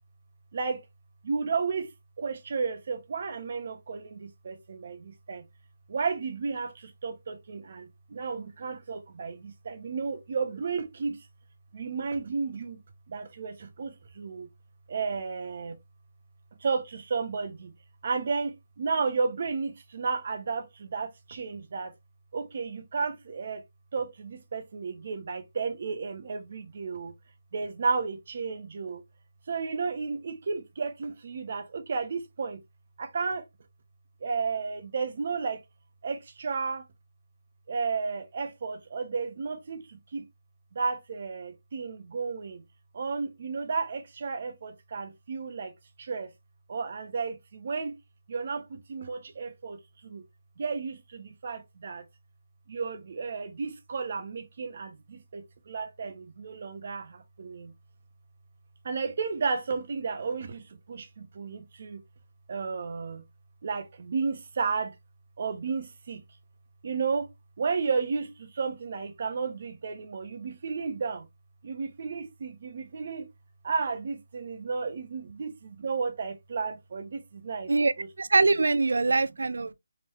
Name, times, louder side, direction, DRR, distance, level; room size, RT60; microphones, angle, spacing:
voice 1, 0.5-0.8 1.2-1.9 2.2-5.4 5.9-11.3 11.7-12.8 13.1-14.5 14.9-15.8 16.6-17.7 18.0-21.9 22.3-23.6 23.9-27.1 27.5-29.0 29.5-32.6 33.0-33.4 34.2-35.6 36.0-36.8 37.7-40.2 40.7-42.6 42.9-45.7 46.0-46.3 46.7-47.9 48.3-50.2 50.6-52.0 52.7-57.7 58.8-62.0 62.5-63.2 63.6-65.0 65.4-66.2 66.8-71.3 71.6-73.3 73.6-77.7 78.0-78.1, right 5 dB, 45° right, 0.9 m, -33 dB
voice 2, 77.7-79.7, right 3 dB, 75° right, 0.5 m, -24 dB
3.9 x 3.6 x 2.9 m
figure-of-eight pair, 165°, 0 cm